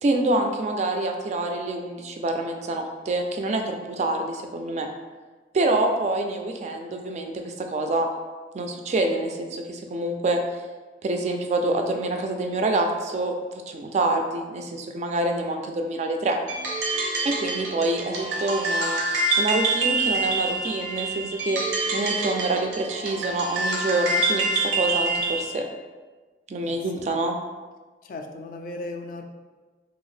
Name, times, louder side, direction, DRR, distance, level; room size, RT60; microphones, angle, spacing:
voice 1, 0.0-4.9 5.5-8.1 8.5-10.4 11.0-13.4 13.7-16.4 17.2-19.0 19.4-21.6 21.9-25.6 26.5-27.4, right 2 dB, 40° right, 4 dB, 0.3 m, -26 dB
sound 1, 16.5-25.5, right 2 dB, 80° right, 0.6 m, -26 dB
voice 2, 26.6-27.0 28.0-29.2, left 2 dB, 50° left, 4 dB, 0.3 m, -37 dB
2.7 x 2.4 x 3.2 m, 1.3 s
head